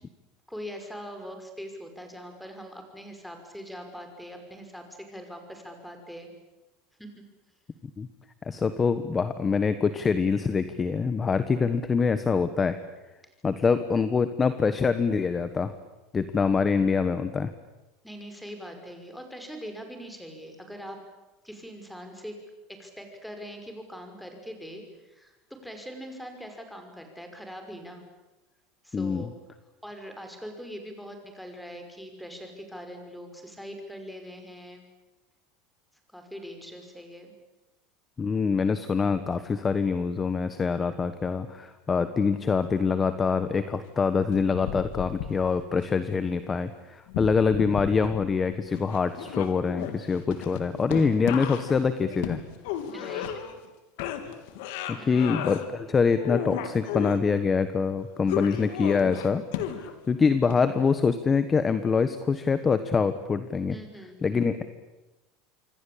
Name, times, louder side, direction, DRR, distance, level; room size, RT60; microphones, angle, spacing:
voice 1, 0.5-6.3 7.0-7.2 18.0-21.0 21.4-22.3 22.7-28.0 28.8-29.3 29.8-34.8 36.1-37.3 52.9-53.4 55.0-55.3 63.7-64.2, equal, ahead, 5 dB, 5.7 m, -42 dB
voice 2, 8.4-12.8 13.4-15.7 16.1-17.5 28.9-29.3 38.2-52.4 54.9-59.4 59.8-63.7 64.2-64.7, left 5 dB, 20° left, 11 dB, 1.3 m, -25 dB
sound 1, 44.3-45.8 47.1-48.5 48.7-53.7 54.0-55.6 56.0-57.2 58.3-60.1 60.5-60.6, left 10 dB, 75° left, 3.4 m, -34 dB
27.5 x 23.5 x 8.7 m, 1.1 s
supercardioid pair, 140°, 0 cm